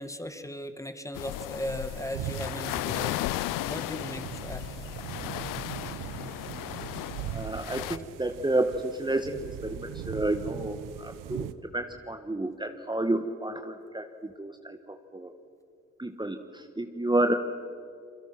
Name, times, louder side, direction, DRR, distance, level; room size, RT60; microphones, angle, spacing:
voice 1, 0.0-4.7, equal, 10° left, 9 dB, 2.1 m, -37 dB
sound 1, 1.1-8.0, left 16 dB, 75° left, 0.6 m, -35 dB
sound 2, 1.6-11.5, right 9 dB, 75° right, 1.0 m, -40 dB
voice 2, 7.3-15.3 16.0-17.4, right 1 dB, 15° right, 6 dB, 1.6 m, -30 dB
27.5 x 23.5 x 6.0 m, 2.4 s
hypercardioid pair, 40°, 33 cm